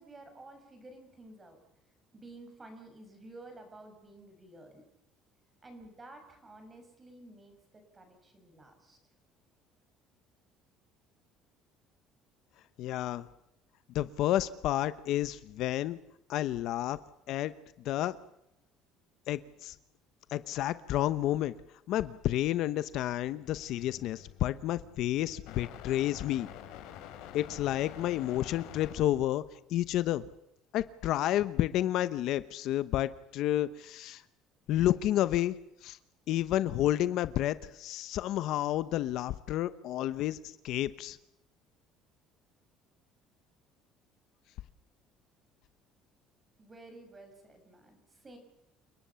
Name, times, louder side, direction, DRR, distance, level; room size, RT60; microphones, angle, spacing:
voice 1, 0.0-1.6 2.1-4.8 5.6-7.6 7.9-9.0 46.6-48.4, right 2 dB, 15° right, 6 dB, 6.0 m, -52 dB
voice 2, 12.8-13.3 13.9-16.0 16.3-17.0 17.3-17.5 17.8-18.1 19.3-19.8 20.3-21.5 21.9-26.5 27.3-30.3 30.7-34.2 34.7-35.6 35.8-36.0 36.3-41.2, left 13 dB, 55° left, 14 dB, 0.9 m, -30 dB
sound 1, 23.4-29.0, left 10 dB, 75° left, 4.6 m, -48 dB
29.5 x 19.0 x 7.0 m, 0.85 s
cardioid pair, 170°, 0 cm